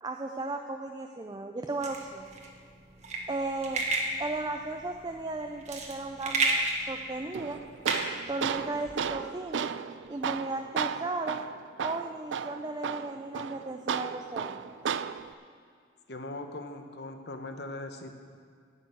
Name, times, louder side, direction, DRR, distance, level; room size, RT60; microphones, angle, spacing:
voice 1, 0.0-2.3 3.3-3.8 4.2-6.6 6.9-7.6 8.3-9.7 10.1-11.4 11.8-14.7, right 2 dB, 25° right, 4 dB, 0.4 m, -35 dB
sound 1, 1.8-9.0, right 2 dB, 40° right, 1.3 m, -32 dB
Tools, 7.3-15.3, right 7 dB, 85° right, 0.4 m, -34 dB
voice 2, 16.1-18.1, left 2 dB, 60° left, 6 dB, 1.0 m, -40 dB
10.5 x 6.7 x 9.0 m, 2.2 s
head